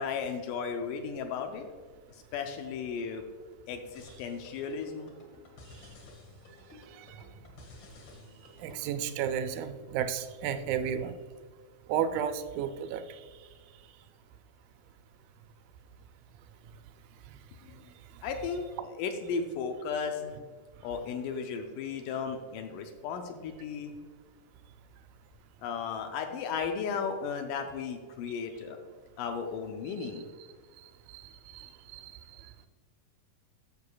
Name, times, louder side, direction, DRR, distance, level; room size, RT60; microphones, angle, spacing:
voice 1, 0.0-1.7 2.3-3.2 3.7-5.1 17.6-17.9 18.2-20.3 20.8-23.9 25.6-28.8 29.2-30.3, left 6 dB, 80° left, 5 dB, 2.0 m, -35 dB
sound 1, 3.9-9.1, left 2 dB, 65° left, 1.3 m, -53 dB
voice 2, 6.9-7.2 8.6-11.2 11.9-13.2 30.0-30.1 30.8-32.1 32.4-32.7, right 8 dB, 90° right, 9 dB, 2.3 m, -34 dB
11.5 x 6.6 x 2.2 m, 1.5 s
omnidirectional pair, 4.0 m